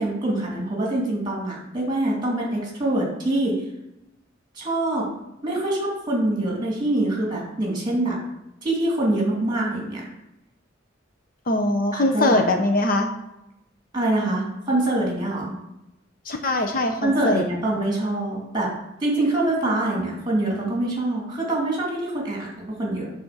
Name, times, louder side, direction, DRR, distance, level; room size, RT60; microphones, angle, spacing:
voice 1, 0.0-3.6 4.6-5.1 5.4-8.2 8.6-10.1 11.9-12.4 13.9-15.5 17.0-18.7 19.0-23.1, right 1 dB, 20° right, -2 dB, 2.5 m, -24 dB
voice 2, 11.5-13.1 16.3-17.4, left 1 dB, 45° left, 5 dB, 0.6 m, -22 dB
7.1 x 4.3 x 6.5 m, 0.89 s
head